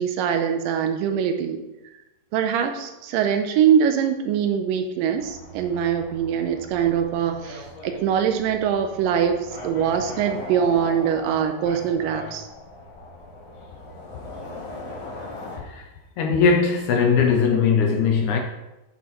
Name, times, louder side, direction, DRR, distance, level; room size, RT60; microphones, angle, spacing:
voice 1, 0.0-1.6 2.3-12.5, right 8 dB, 85° right, 2.3 m, -23 dB
sound 1, 5.1-15.6, left 2 dB, 50° left, 3.1 m, -39 dB
voice 2, 16.2-18.4, left 5 dB, 75° left, 1.8 m, -20 dB
9.4 x 5.9 x 3.1 m
omnidirectional pair, 4.0 m